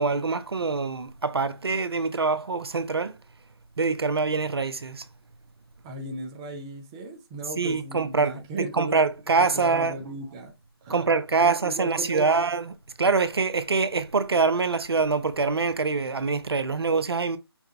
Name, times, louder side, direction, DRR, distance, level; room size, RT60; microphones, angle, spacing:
voice 1, 0.0-3.1 3.8-5.0 7.6-10.0 10.9-17.4, right 4 dB, 70° right, 0.7 m, -25 dB
voice 2, 5.8-9.1 9.4-10.5 10.8-11.1 11.4-12.4, right 2 dB, 10° right, 0.4 m, -36 dB
5.7 x 2.2 x 4.0 m
figure-of-eight pair, 150°, 13 cm